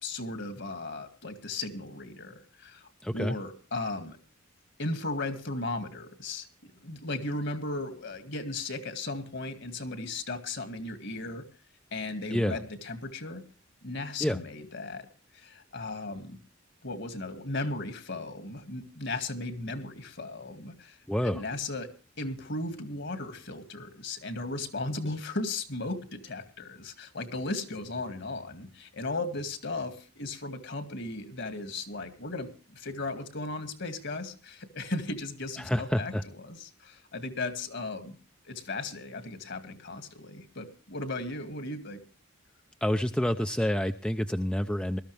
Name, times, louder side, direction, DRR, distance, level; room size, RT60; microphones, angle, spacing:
voice 1, 0.0-2.9 3.1-4.2 4.8-11.4 11.9-13.4 13.8-15.1 15.3-16.4 16.8-21.0 21.2-21.9 22.2-38.2 38.5-42.0, left 2 dB, 60° left, 9 dB, 2.2 m, -36 dB
voice 2, 3.0-3.4 12.3-12.6 14.2-14.4 21.1-21.4 35.6-36.2 42.8-45.0, equal, 5° left, 7 dB, 0.6 m, -28 dB
20.0 x 13.0 x 3.3 m, 0.35 s
head